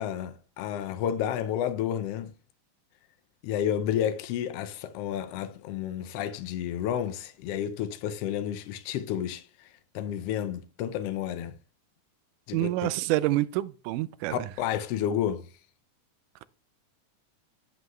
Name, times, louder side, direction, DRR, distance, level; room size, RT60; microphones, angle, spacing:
voice 1, 0.0-2.3 3.4-11.5 12.5-12.9 14.3-15.5, left 10 dB, 90° left, 1.3 m, -31 dB
voice 2, 12.5-14.4, right 16 dB, 90° right, 2.1 m, -27 dB
11.5 x 5.5 x 3.1 m
omnidirectional pair, 3.6 m